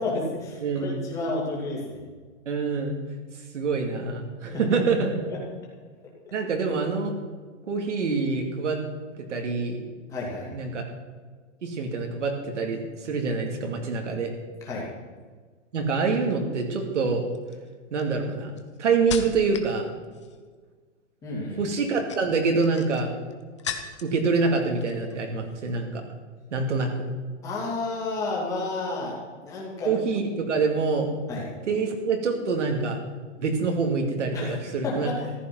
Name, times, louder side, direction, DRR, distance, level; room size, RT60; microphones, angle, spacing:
voice 1, 0.0-2.0 4.4-4.8 5.3-5.4 10.1-10.5 14.6-14.9 21.2-21.6 27.4-29.9 31.3-31.4 34.3-34.5 34.8-35.3, left 2 dB, 10° left, -4 dB, 2.4 m, -31 dB
voice 2, 0.6-1.0 2.5-3.0 3.5-5.2 6.3-7.1 7.7-8.8 9.2-9.8 10.5-10.8 11.6-14.3 15.7-17.2 17.9-18.5 18.8-19.9 21.6-23.1 24.0-26.0 26.5-26.9 29.8-31.1 31.7-33.0 33.4-35.1, right 4 dB, 70° right, 2 dB, 2.5 m, -26 dB
sound 1, 16.3-16.6 17.3-19.7 20.0-20.5 21.8-24.2 24.5-25.2 25.5-25.7, left 7 dB, 25° left, 0.7 m, -38 dB
14.5 x 12.0 x 6.0 m, 1.5 s
hypercardioid pair, 180°, 37 cm